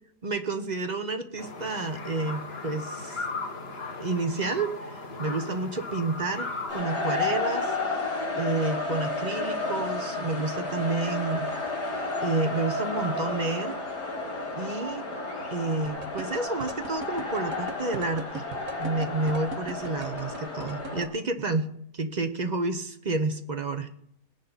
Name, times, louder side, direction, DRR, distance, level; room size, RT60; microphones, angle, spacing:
voice 1, 0.2-3.3 4.0-8.0 8.3-11.5 12.2-13.8 14.6-15.0 15.5-18.4 18.8-23.9, right 3 dB, 35° right, 8 dB, 0.8 m, -30 dB
sound 1, 1.4-6.8, left 3 dB, 40° left, 1.6 m, -37 dB
sound 2, 6.7-21.0, left 2 dB, 85° left, 4.1 m, -32 dB
sound 3, 15.8-21.1, right 6 dB, 60° right, 1.4 m, -38 dB
19.5 x 10.5 x 4.1 m, 0.69 s
omnidirectional pair, 1.8 m